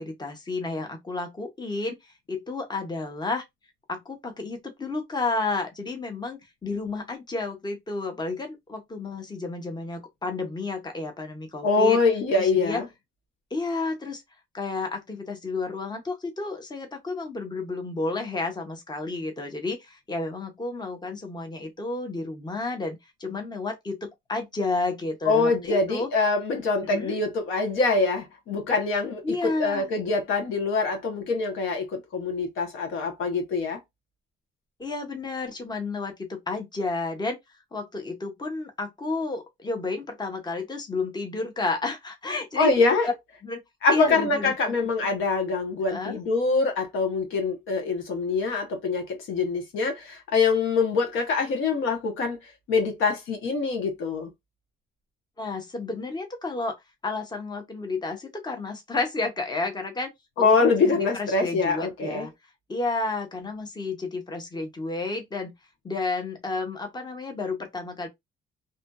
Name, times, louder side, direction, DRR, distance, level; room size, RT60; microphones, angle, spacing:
voice 1, 0.0-3.4 3.9-12.0 12.3-12.8 13.5-14.2 14.5-26.1 26.9-27.2 29.2-29.9 34.8-37.4 37.7-42.7 43.0-43.1 43.4-43.6 43.9-44.7 45.0-45.1 45.9-46.2 55.4-60.1 60.4-62.3 62.7-65.5 65.8-68.1, left 3 dB, 20° left, 0.9 m, -31 dB
voice 2, 11.6-12.9 25.2-33.8 42.6-43.1 43.8-52.4 52.7-54.3 60.4-62.3, left 4 dB, 85° left, 1.0 m, -24 dB
2.7 x 2.5 x 2.2 m
cardioid pair, 90°, 20 cm